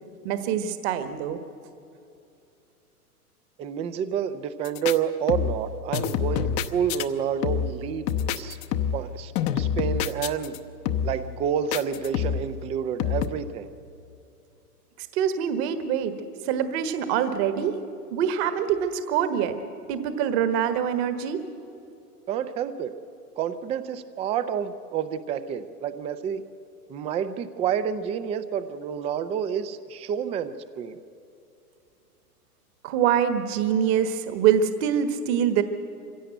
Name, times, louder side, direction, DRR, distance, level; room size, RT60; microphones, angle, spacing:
voice 1, 0.2-1.4 15.1-16.1 16.4-17.8 18.1-19.6 19.9-21.4 32.8-35.6, right 8 dB, 45° right, 10 dB, 1.5 m, -24 dB
voice 2, 3.6-8.1 8.4-8.6 8.9-10.6 11.0-13.7 22.3-22.9 23.4-26.4 26.9-31.0, right 8 dB, 15° right, 12 dB, 0.5 m, -29 dB
sound 1, 4.6-5.0 5.3-5.7 5.9-7.0 7.4-7.8 8.1-9.1 9.3-10.6 10.8-11.2 11.7-12.5 13.0-13.3, left 8 dB, 30° left, 0.8 m, -27 dB
24.0 x 16.5 x 7.9 m, 2.6 s
hypercardioid pair, 115°, 46 cm